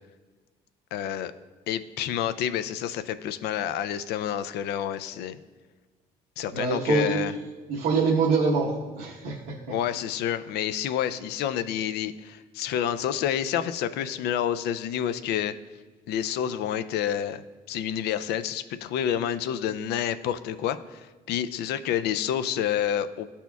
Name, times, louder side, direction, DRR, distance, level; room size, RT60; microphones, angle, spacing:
voice 1, 0.9-1.3 1.7-5.4 6.4-7.3 9.7-15.5 16.1-23.3, left 10 dB, 75° left, 13 dB, 0.4 m, -29 dB
voice 2, 6.5-7.2 7.7-9.4, right 4 dB, 80° right, -6 dB, 1.1 m, -24 dB
12.5 x 4.2 x 2.3 m, 1.3 s
cardioid pair, 110°, 17 cm